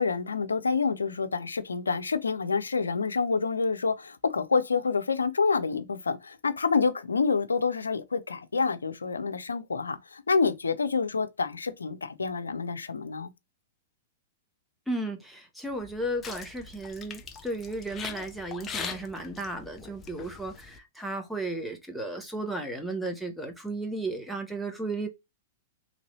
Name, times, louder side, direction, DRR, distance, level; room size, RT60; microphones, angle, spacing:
voice 1, 0.0-13.3, left 4 dB, 90° left, 0.5 m, -28 dB
voice 2, 14.9-25.1, right 2 dB, ahead, 0.9 m, -34 dB
sound 1, 15.7-20.8, left 6 dB, 20° left, 0.6 m, -41 dB
3.0 x 2.6 x 3.0 m
hypercardioid pair, 110°, 0 cm